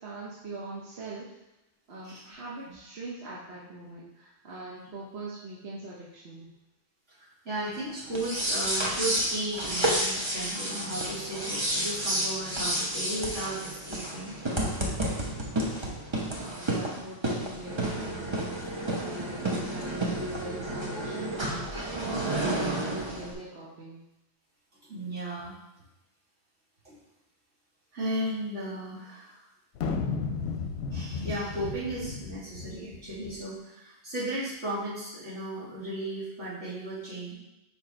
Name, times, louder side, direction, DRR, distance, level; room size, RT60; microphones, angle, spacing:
voice 1, 0.0-1.4 1.9-6.5 16.2-24.0, right 2 dB, 65° right, -6 dB, 1.2 m, -42 dB
voice 2, 7.4-14.3 24.9-25.5 26.8-27.0 27.9-29.4 30.6-37.3, right 1 dB, 90° right, -9 dB, 2.7 m, -35 dB
sound 1, 8.1-23.3, right 1 dB, 25° right, 0.9 m, -31 dB
sound 2, 29.8-33.4, left 5 dB, 70° left, 0.8 m, -34 dB
5.3 x 4.5 x 4.3 m, 0.94 s
omnidirectional pair, 1.2 m